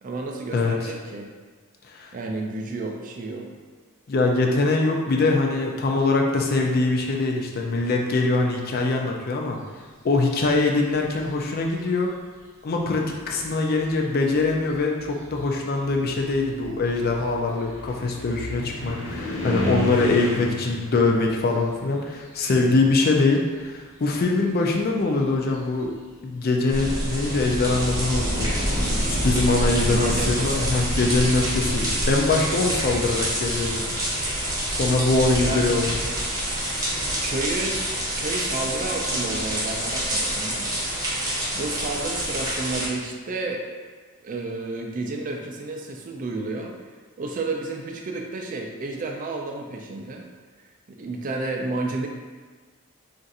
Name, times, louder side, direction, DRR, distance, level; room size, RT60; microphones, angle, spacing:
voice 1, 0.0-1.3 2.1-3.5 29.9-30.7 35.4-35.7 37.2-37.8 38.2-40.7 41.5-43.6 44.2-46.8 47.2-50.2 50.9-52.1, right 2 dB, 35° right, 1 dB, 0.3 m, -31 dB
voice 2, 0.5-0.9 1.9-2.1 4.1-9.6 10.0-12.1 12.6-25.9 26.2-28.5 29.1-33.8 34.7-36.0, left 3 dB, 45° left, 1 dB, 0.4 m, -23 dB
sound 1, 10.9-11.5 12.4-12.5 13.1-23.0 23.3-25.9, equal, 90° left, 0.9 m, -35 dB
sound 2, 26.7-42.9, equal, 15° right, 0.7 m, -26 dB
2.5 x 2.4 x 4.0 m, 1.4 s
head